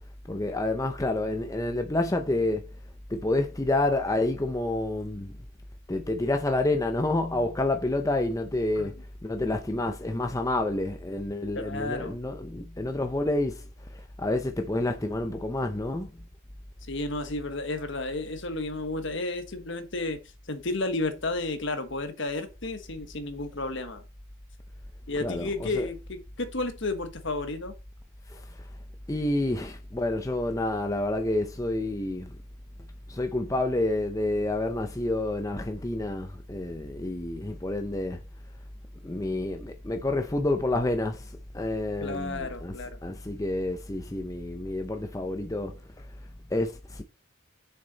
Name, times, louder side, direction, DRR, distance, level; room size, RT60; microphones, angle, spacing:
voice 1, 0.3-2.7 3.1-5.3 5.9-9.0 9.2-16.1 25.2-25.9 28.3-28.7 29.1-32.4 33.1-38.2 39.0-42.7 43.0-47.0, left 2 dB, 15° left, 0.6 m, -29 dB
voice 2, 11.6-12.1 16.9-20.2 20.5-24.0 25.1-27.7 42.0-43.0, left 2 dB, 55° left, 1.3 m, -32 dB
6.8 x 6.7 x 4.0 m
head